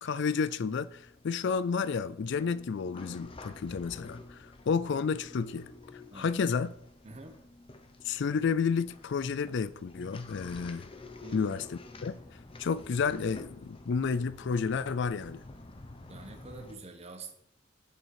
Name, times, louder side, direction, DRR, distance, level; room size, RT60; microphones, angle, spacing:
voice 1, 0.0-6.7 8.0-10.8 11.3-11.7 12.0-12.1 12.6-15.4, left 5 dB, 55° left, 0.4 m, -31 dB
sound 1, 0.6-16.7, left 2 dB, 25° left, 0.8 m, -50 dB
voice 2, 6.1-6.4 7.0-7.4 11.2-11.6 16.1-17.3, right 3 dB, 30° right, 1.1 m, -46 dB
8.1 x 7.4 x 4.8 m
head